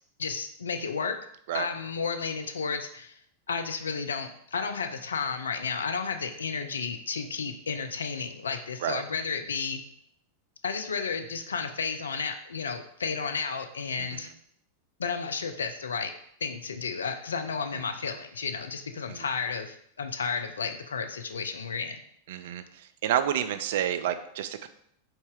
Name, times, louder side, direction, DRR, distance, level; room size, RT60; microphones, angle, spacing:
voice 1, 0.2-1.2 1.5-3.1 3.5-9.8 10.6-14.3 15.0-16.1 16.4-22.0, left 5 dB, 70° left, 7 dB, 0.4 m, -32 dB
voice 2, 14.0-14.3 17.7-17.8 19.1-19.3 22.3-24.7, right 10 dB, 55° right, 10 dB, 0.3 m, -30 dB
4.0 x 2.8 x 3.6 m, 0.68 s
figure-of-eight pair, 90°, 0 cm